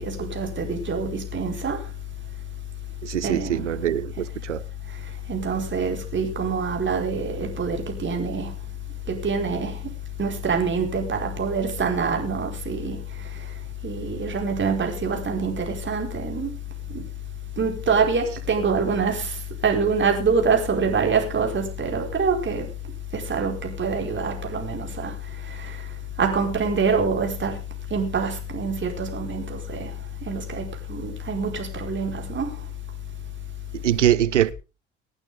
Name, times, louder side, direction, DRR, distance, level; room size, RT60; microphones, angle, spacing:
voice 1, 0.0-1.9 3.2-3.8 4.9-8.6 9.1-9.9 10.2-16.5 16.9-17.1 17.6-22.7 23.1-32.7, right 4 dB, 30° right, 5.0 m, -26 dB
voice 2, 3.0-4.6 33.7-34.5, right 11 dB, 85° right, 0.6 m, -23 dB
24.5 x 8.9 x 3.7 m
figure-of-eight pair, 60°, 35 cm